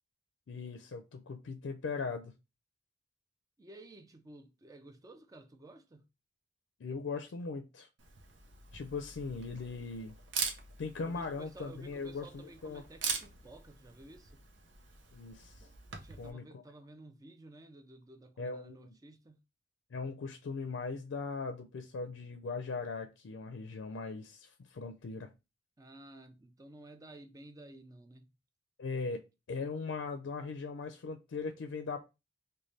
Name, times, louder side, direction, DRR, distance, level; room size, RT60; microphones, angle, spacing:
voice 1, 0.5-2.3 6.8-7.9 8.7-10.1 10.8-12.8 15.1-15.7 16.2-16.4 18.4-18.9 19.9-25.3 28.8-29.2 29.5-32.0, left 4 dB, 80° left, 0.4 m, -39 dB
voice 2, 3.6-6.1 11.0-14.4 15.9-19.4 25.8-28.3, right 2 dB, 20° right, 0.4 m, -53 dB
Camera, 8.0-16.3, right 5 dB, 85° right, 0.7 m, -43 dB
3.2 x 2.2 x 3.8 m
head